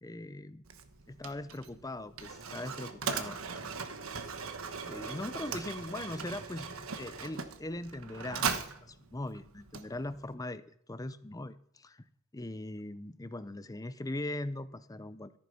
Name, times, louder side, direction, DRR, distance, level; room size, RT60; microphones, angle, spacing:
voice 1, 0.0-0.6 1.1-3.7 4.9-8.5 8.8-12.1 12.3-15.4, left 1 dB, 15° left, 14 dB, 0.6 m, -40 dB
Mechanisms, 0.6-10.3, right 5 dB, 70° right, 1.2 m, -39 dB
14.0 x 9.3 x 5.4 m, 0.67 s
head